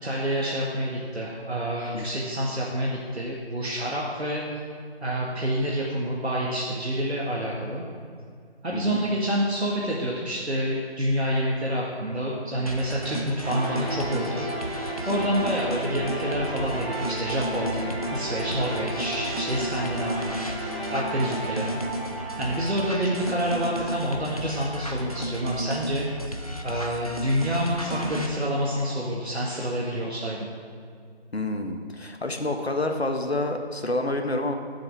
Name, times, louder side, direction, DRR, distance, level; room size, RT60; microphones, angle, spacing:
voice 1, 0.0-4.4 5.0-7.8 8.6-14.5 14.7-21.8 22.3-26.1 26.6-30.5, equal, 80° right, -4 dB, 1.8 m, -28 dB
sound 1, 12.7-28.3, right 1 dB, 35° left, 0.7 m, -34 dB
sound 2, 13.4-24.3, right 1 dB, 30° right, 2.6 m, -34 dB
voice 2, 31.3-34.6, left 2 dB, 75° left, 5 dB, 1.3 m, -28 dB
16.0 x 7.6 x 3.6 m, 2.1 s
figure-of-eight pair, 175°, 32 cm